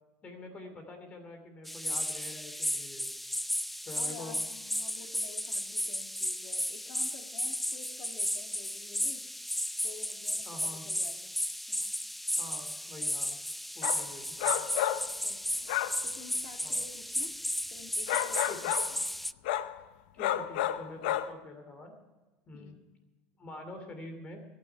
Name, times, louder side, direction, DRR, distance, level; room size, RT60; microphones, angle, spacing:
voice 1, 0.2-3.1 3.8-4.4 10.4-10.9 12.3-13.4 13.7-14.7 16.6-16.8 18.5-18.7 20.1-21.9 22.5-22.8 23.4-24.4, left 2 dB, 30° left, 6 dB, 2.7 m, -46 dB
sound 1, 1.7-19.3, left 1 dB, ahead, 0.3 m, -34 dB
voice 2, 3.9-9.3 9.8-11.3 11.7-11.9 15.2-15.5 16.0-17.3 17.7-19.0 22.5-22.9, left 7 dB, 65° left, 5 dB, 2.1 m, -51 dB
sound 2, 13.8-14.0 14.4-15.1 15.7-16.0 18.1-19.0 19.4-19.8 20.2-21.3, left 12 dB, 90° left, 0.8 m, -31 dB
23.5 x 9.4 x 4.5 m, 1.2 s
supercardioid pair, 135°, 5 cm